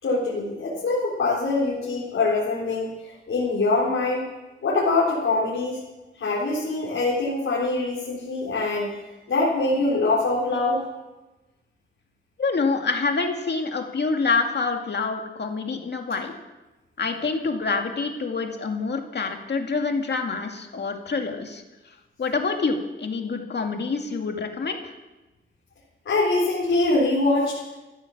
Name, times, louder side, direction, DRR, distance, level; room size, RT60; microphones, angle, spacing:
voice 1, 0.0-4.3 4.6-5.8 6.2-8.9 9.3-10.8 26.1-27.6, left 2 dB, 85° left, -6 dB, 4.1 m, -23 dB
voice 2, 12.4-16.3 17.0-21.6 22.2-24.9, left 4 dB, 55° left, 4 dB, 2.1 m, -26 dB
15.0 x 12.5 x 7.2 m, 1.1 s
wide cardioid pair, 135°, 20 cm